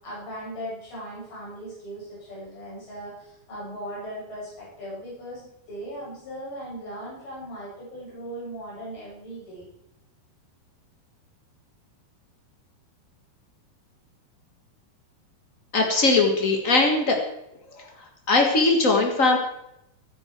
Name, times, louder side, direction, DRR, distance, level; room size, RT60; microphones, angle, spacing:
voice 1, 0.0-9.7, equal, 70° left, -7 dB, 9.3 m, -38 dB
voice 2, 15.7-17.2 17.8-17.9 18.3-19.4, left 3 dB, 55° left, 2 dB, 0.8 m, -20 dB
23.0 x 9.9 x 4.6 m, 0.81 s
omnidirectional pair, 4.6 m